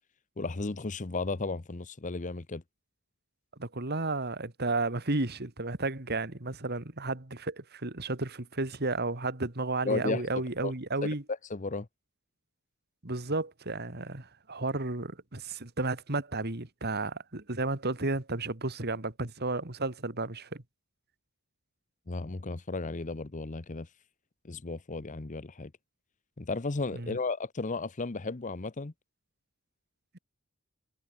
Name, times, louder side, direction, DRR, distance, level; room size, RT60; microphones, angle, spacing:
voice 1, 0.4-2.6 9.8-10.3 10.6-10.7 11.0-11.9 22.1-23.9 24.4-25.7 26.4-28.9, left 3 dB, 35° left, 0.8 m, -34 dB
voice 2, 3.6-11.2 13.0-20.6 26.9-27.2, right 2 dB, 45° right, 2.3 m, -33 dB
head